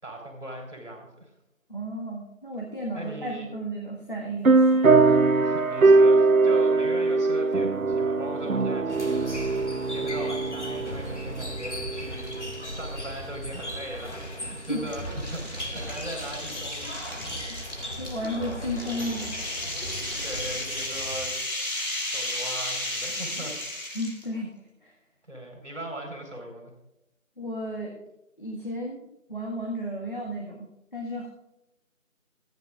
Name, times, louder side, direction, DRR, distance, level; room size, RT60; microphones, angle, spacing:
voice 1, 0.0-1.3 2.9-3.5 5.4-17.2 20.2-21.3 22.0-24.0 25.3-26.7, right 1 dB, 55° right, 1 dB, 4.5 m, -39 dB
voice 2, 1.7-4.7 14.7-14.8 18.0-19.7 23.9-24.5 24.8-24.9 27.4-27.9 28.4-31.3, equal, 35° left, -3 dB, 1.7 m, -33 dB
sound 1, 4.4-12.5, right 3 dB, 75° right, 0.9 m, -21 dB
sound 2, 8.9-21.4, equal, 55° left, 2.2 m, -37 dB
sound 3, 12.2-12.6 13.0-13.1 14.1-24.3, left 1 dB, 85° left, 5.2 m, -34 dB
27.0 x 9.6 x 2.5 m, 0.88 s
figure-of-eight pair, 180°, 42 cm